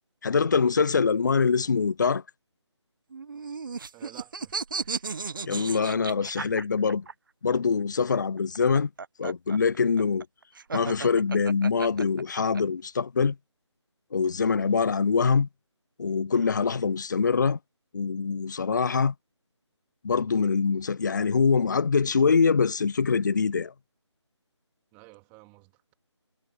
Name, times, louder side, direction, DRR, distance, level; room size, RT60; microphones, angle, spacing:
voice 1, 0.2-2.2 5.4-7.0 7.4-8.9 9.2-10.3 10.7-13.4 14.1-15.5 16.0-17.6 17.9-19.1 20.0-23.7, left 5 dB, 40° left, 0.6 m, -24 dB
sound 1, 3.1-7.1 8.4-12.6, right 5 dB, 45° right, 1.2 m, -35 dB
voice 2, 3.9-5.1 6.2-6.6 14.6-14.9 24.9-25.9, right 28 dB, 10° right, 3.3 m, -52 dB
figure-of-eight pair, 160°, 15 cm